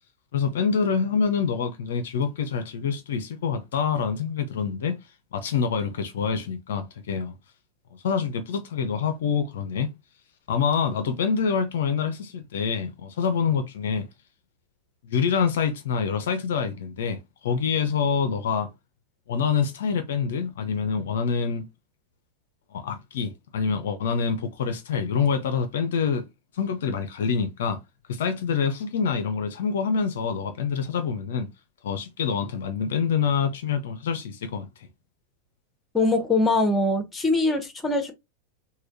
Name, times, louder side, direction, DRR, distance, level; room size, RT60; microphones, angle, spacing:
voice 1, 0.3-4.9 5.3-7.3 8.0-9.9 10.5-14.1 15.0-18.7 19.3-21.7 22.7-26.3 26.6-27.8 28.1-31.5 31.8-34.7, left 6 dB, 60° left, 0.4 m, -26 dB
voice 2, 35.9-38.1, left 2 dB, 10° left, 0.7 m, -22 dB
3.4 x 2.2 x 2.5 m
figure-of-eight pair, 90°, 0 cm